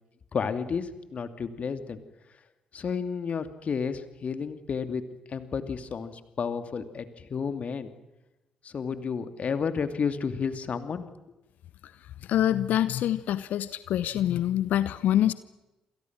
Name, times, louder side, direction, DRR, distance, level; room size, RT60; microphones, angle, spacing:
voice 1, 0.3-2.0 2.7-5.0 5.3-7.9 8.6-11.0, left 6 dB, 45° left, 9 dB, 2.7 m, -31 dB
voice 2, 12.2-15.3, left 11 dB, 60° left, 15 dB, 0.9 m, -25 dB
28.0 x 28.0 x 6.2 m, 0.99 s
figure-of-eight pair, 40°, 3 cm